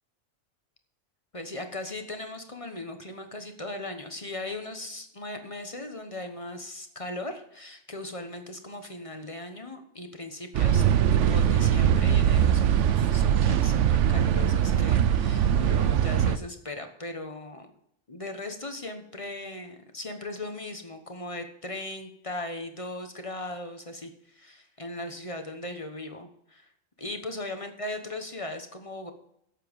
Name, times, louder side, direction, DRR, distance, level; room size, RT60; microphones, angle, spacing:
voice 1, 1.3-10.8 11.1-17.7 18.1-26.7 27.0-29.1, left 2 dB, 25° left, 6 dB, 1.1 m, -38 dB
sound 1, 10.5-16.4, right 9 dB, 70° right, 0.9 m, -22 dB
11.5 x 8.0 x 5.2 m, 0.72 s
omnidirectional pair, 1.4 m